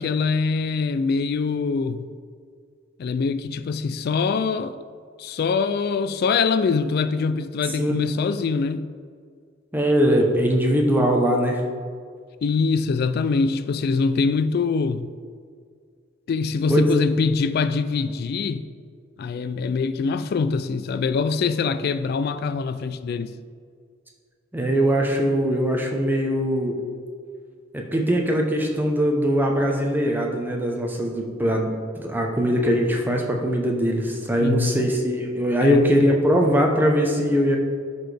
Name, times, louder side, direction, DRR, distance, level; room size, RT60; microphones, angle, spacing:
voice 1, 0.0-2.0 3.0-4.8 5.2-8.9 12.4-15.1 16.3-18.7 19.2-23.3 34.4-34.8 35.6-35.9, left 4 dB, 55° left, 0.3 m, -23 dB
voice 2, 9.7-11.6 16.7-16.9 24.5-26.7 27.7-31.7 32.0-37.6, equal, 10° right, 0.8 m, -21 dB
11.5 x 4.2 x 3.4 m
head